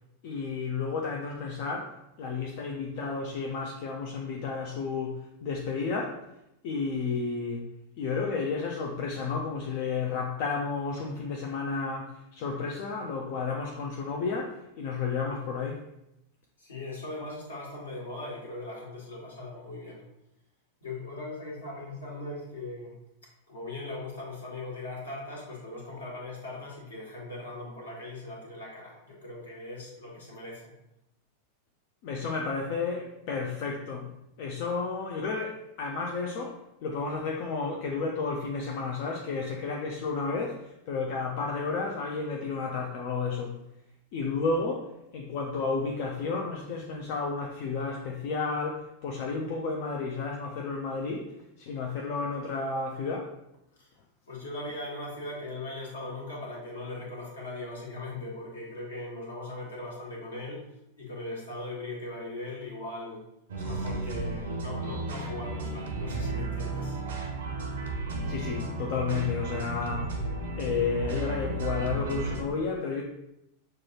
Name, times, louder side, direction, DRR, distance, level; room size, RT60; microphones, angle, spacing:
voice 1, 0.2-6.2 6.6-7.7 8.0-15.8 32.0-34.1 34.4-43.6 44.1-53.3 68.2-70.2 70.6-73.0, left 4 dB, 45° left, 0 dB, 0.5 m, -32 dB
voice 2, 16.6-20.0 20.8-22.9 23.5-30.7 53.8-53.9 54.3-60.6 60.9-63.2 63.6-67.0, left 2 dB, 70° left, -4 dB, 1.4 m, -39 dB
sound 1, 63.5-72.4, right 2 dB, 65° right, 0.7 m, -33 dB
6.1 x 2.3 x 2.9 m, 0.85 s
figure-of-eight pair, 90°, 0 cm